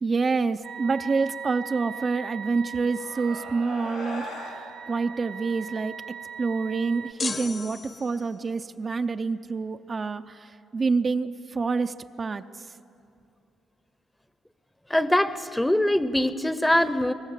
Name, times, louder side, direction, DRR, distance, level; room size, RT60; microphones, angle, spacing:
voice 1, 0.0-4.3 4.9-6.0 6.4-12.7, right 4 dB, 35° right, 8 dB, 0.5 m, -27 dB
sound 1, 0.6-7.1, right 7 dB, 70° right, 1.0 m, -39 dB
sound 2, 2.8-7.5, left 5 dB, 85° left, 1.9 m, -44 dB
sound 3, 7.2-8.5, left 4 dB, 35° left, 1.1 m, -35 dB
voice 2, 14.9-17.1, left 1 dB, 10° left, 13 dB, 0.8 m, -23 dB
22.0 x 19.5 x 7.4 m, 2.8 s
cardioid pair, 90°, 0 cm